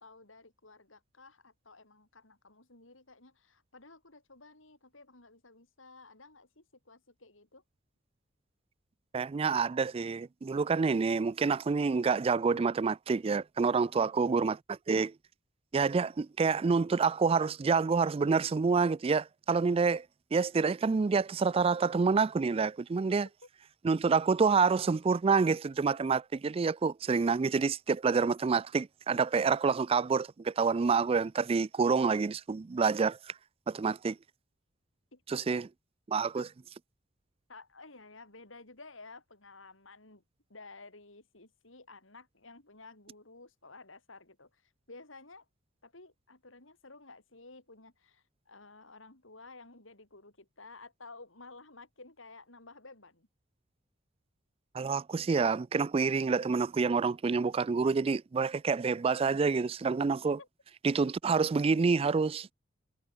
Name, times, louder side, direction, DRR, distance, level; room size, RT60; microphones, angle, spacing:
voice 1, 0.0-7.6 13.8-14.2 35.1-35.7 36.4-36.5 37.5-40.2 40.5-45.5 45.8-53.3 60.4-60.5, left 3 dB, 75° left, 5.8 m, -53 dB
voice 2, 9.1-15.1 15.7-20.1 20.3-23.3 23.8-33.3 33.7-34.2 35.3-35.7 36.1-36.5 54.7-60.4 60.8-62.5, right 5 dB, 30° right, 0.3 m, -28 dB
head